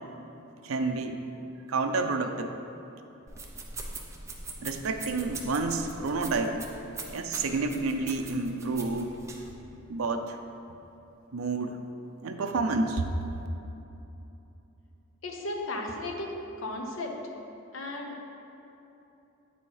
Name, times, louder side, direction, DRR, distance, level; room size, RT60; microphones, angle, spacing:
voice 1, 0.6-2.5 4.6-6.6 7.1-9.1 9.9-10.4 11.3-11.8 12.2-13.0, right 3 dB, 75° right, 5 dB, 0.5 m, -29 dB
sound 1, 3.3-9.5, right 3 dB, 15° right, 0.5 m, -42 dB
voice 2, 15.2-17.2 17.7-18.2, left 1 dB, 65° left, 1 dB, 0.9 m, -35 dB
8.6 x 4.2 x 4.7 m, 2.9 s
head